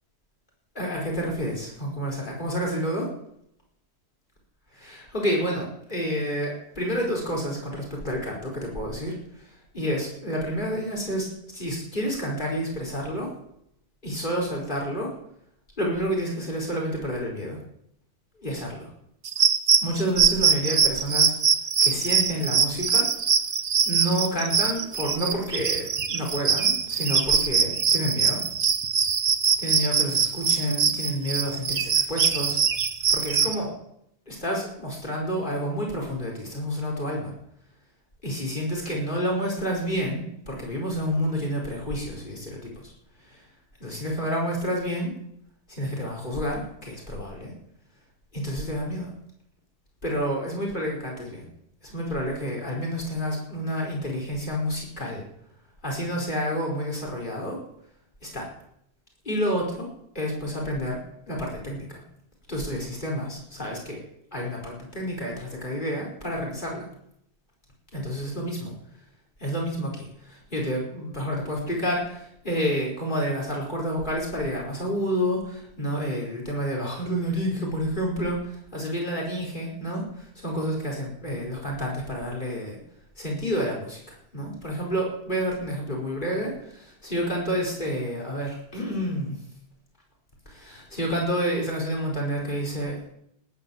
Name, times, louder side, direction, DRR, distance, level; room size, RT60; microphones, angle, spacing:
voice 1, 0.8-3.1 4.7-9.5 9.7-13.3 14.0-15.1 15.8-17.6 18.4-18.9 19.8-21.3 21.8-23.1 23.9-28.4 29.6-32.6 33.1-33.7 34.3-37.3 38.2-42.9 43.3-43.4 43.8-45.1 45.7-47.5 48.3-49.1 50.0-51.5 51.8-55.2 55.8-57.6 58.2-58.5 59.3-59.9 60.2-61.0 61.3-62.0 62.5-64.0 64.3-66.9 67.9-68.8 69.4-82.8 83.2-89.4 90.5-93.0, equal, 45° left, -2 dB, 5.2 m, -29 dB
sound 1, 19.2-33.5, right 6 dB, 70° right, 1.3 m, -23 dB
18.5 x 9.8 x 7.3 m, 0.75 s
omnidirectional pair, 1.1 m